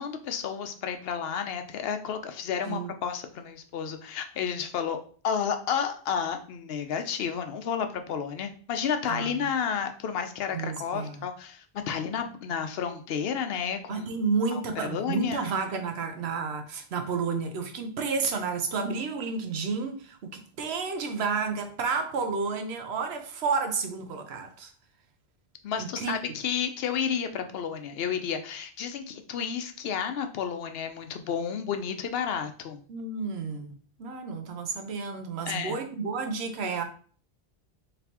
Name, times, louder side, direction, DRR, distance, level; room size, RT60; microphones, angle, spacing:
voice 1, 0.0-14.1 14.5-15.5 25.6-32.8 35.5-35.8, left 7 dB, 70° left, 0.8 m, -31 dB
voice 2, 9.1-9.5 10.5-11.2 13.9-24.7 25.8-26.1 32.9-36.8, right 5 dB, 85° right, 0.9 m, -31 dB
4.0 x 3.3 x 2.8 m
omnidirectional pair, 1.1 m